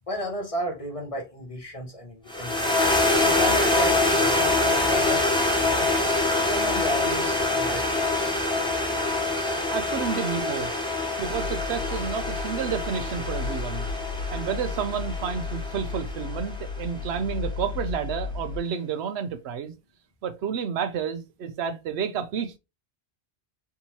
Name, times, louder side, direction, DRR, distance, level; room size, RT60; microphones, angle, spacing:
voice 1, 0.1-2.8 3.2-5.9 6.4-8.4, equal, 35° left, 0.9 m, -33 dB
sound 1, 2.3-16.7, left 2 dB, 5° left, 0.7 m, -25 dB
voice 2, 9.7-10.7 11.2-13.9 14.3-19.7 20.2-22.6, right 7 dB, 80° right, 0.8 m, -30 dB
sound 2, 11.2-18.6, left 4 dB, 60° right, 1.0 m, -34 dB
3.5 x 2.8 x 2.9 m
omnidirectional pair, 1.1 m